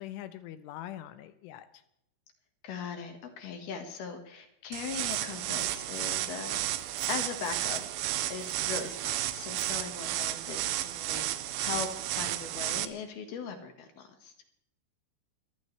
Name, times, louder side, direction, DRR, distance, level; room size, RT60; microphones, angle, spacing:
voice 1, 0.0-1.8, left 13 dB, 80° left, 11 dB, 3.2 m, -43 dB
voice 2, 2.6-6.6 7.1-7.8 8.3-11.3 11.6-11.9 12.2-14.3, left 6 dB, 60° left, 6 dB, 3.1 m, -39 dB
sound 1, 4.7-12.9, right 14 dB, 80° right, 3.3 m, -33 dB
sound 2, 4.9-5.0 5.1-5.2 5.5-6.3 6.7-8.0 8.3-10.0, left 5 dB, 45° left, 7.2 m, -56 dB
23.5 x 16.5 x 3.3 m, 0.78 s
omnidirectional pair, 5.7 m